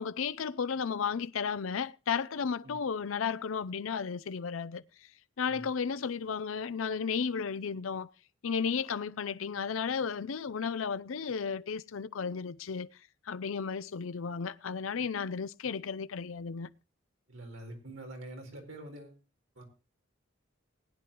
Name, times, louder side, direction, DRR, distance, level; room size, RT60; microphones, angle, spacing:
voice 1, 0.0-4.8 5.4-8.1 8.4-12.9 13.3-16.7, left 6 dB, 80° left, 0.5 m, -34 dB
voice 2, 17.3-19.2 19.5-19.6, right 1 dB, 70° right, 4.4 m, -45 dB
20.5 x 9.5 x 3.0 m
head